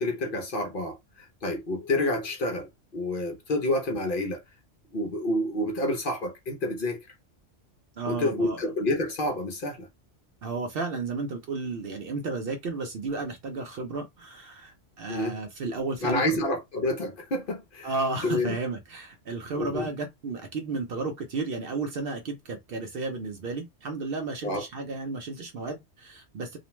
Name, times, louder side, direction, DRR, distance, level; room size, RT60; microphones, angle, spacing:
voice 1, 0.0-4.4 4.9-7.1 8.1-9.9 15.1-15.4 16.0-17.9 18.2-18.6 19.6-19.9 24.4-24.6, left 1 dB, 55° left, 0.7 m, -29 dB
voice 2, 8.0-8.7 10.4-16.2 17.8-26.6, right 3 dB, 60° right, 0.7 m, -33 dB
2.4 x 2.1 x 2.9 m
omnidirectional pair, 1.2 m